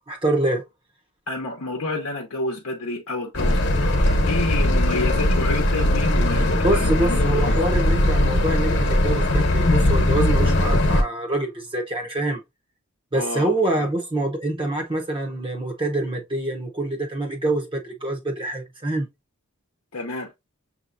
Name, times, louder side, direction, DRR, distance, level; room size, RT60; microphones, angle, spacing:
voice 1, 0.1-0.6 6.6-12.4 13.1-19.1, right 2 dB, 25° right, 0.8 m, -25 dB
voice 2, 1.3-7.6 13.1-13.9 19.9-20.3, left 2 dB, 80° left, 0.8 m, -29 dB
sound 1, 3.3-11.0, left 1 dB, 50° left, 1.1 m, -19 dB
6.7 x 2.8 x 2.6 m
head